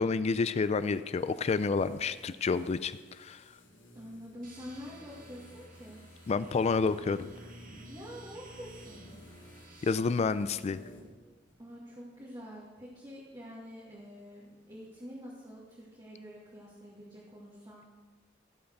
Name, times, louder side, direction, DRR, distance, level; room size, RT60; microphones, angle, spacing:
voice 1, 0.0-3.4 6.3-7.3 9.8-10.8, left 4 dB, 35° left, 14 dB, 0.3 m, -29 dB
sound 1, 0.5-11.2 11.5-11.6, left 1 dB, 75° left, 3.3 m, -55 dB
voice 2, 3.9-6.0 7.9-9.0 11.6-17.9, equal, 25° right, -6 dB, 2.3 m, -47 dB
sound 2, 4.4-9.9, right 2 dB, 45° right, 1.6 m, -54 dB
16.0 x 5.6 x 6.6 m, 1.3 s
head